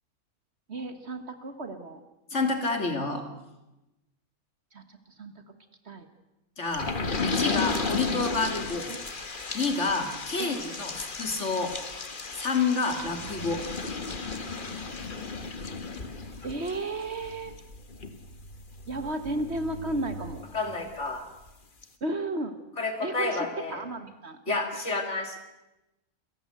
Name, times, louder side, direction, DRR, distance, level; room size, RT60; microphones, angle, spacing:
voice 1, 0.7-2.0 4.7-5.3 5.9-6.1 8.9-9.0 10.4-10.6 13.2-13.3 16.4-17.5 18.9-20.4 22.0-22.5 23.0-24.6, right 2 dB, 50° right, 8 dB, 1.7 m, -34 dB
voice 2, 2.3-3.2 6.6-6.9 7.2-8.9 9.5-11.7 12.3-13.6 20.5-21.2 22.8-23.8 24.5-25.4, left 3 dB, 55° left, 5 dB, 3.0 m, -29 dB
sound 1, 6.7-21.0 21.5-21.6 21.8-21.9, left 4 dB, 35° left, 1.5 m, -35 dB
27.5 x 15.0 x 7.9 m, 0.96 s
omnidirectional pair, 1.5 m